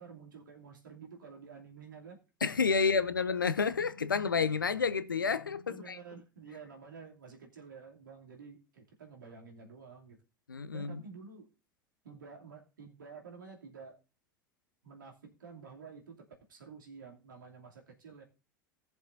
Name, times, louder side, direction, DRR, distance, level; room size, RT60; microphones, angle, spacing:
voice 1, 0.0-2.2 2.8-3.0 5.7-10.2 10.7-11.5 12.0-14.0 14.8-18.2, right 5 dB, 75° right, 2.7 m, -50 dB
voice 2, 2.4-6.0 10.5-11.0, left 5 dB, 85° left, 0.7 m, -30 dB
19.0 x 7.1 x 2.6 m
figure-of-eight pair, 75°, 11 cm